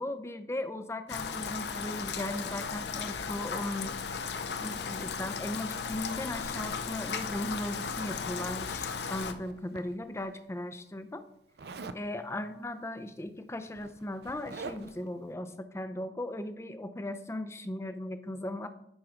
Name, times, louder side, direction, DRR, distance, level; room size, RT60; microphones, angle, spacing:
voice 1, 0.0-3.9 4.6-11.2 11.9-18.7, left 1 dB, 15° left, 10 dB, 0.4 m, -37 dB
Rain, 1.1-9.3, left 6 dB, 70° left, 0.6 m, -36 dB
Zipper (clothing), 8.6-10.3 11.6-12.1 13.2-13.3 13.6-15.1, right 4 dB, 65° right, 0.5 m, -45 dB
10.5 x 4.6 x 3.7 m, 0.79 s
head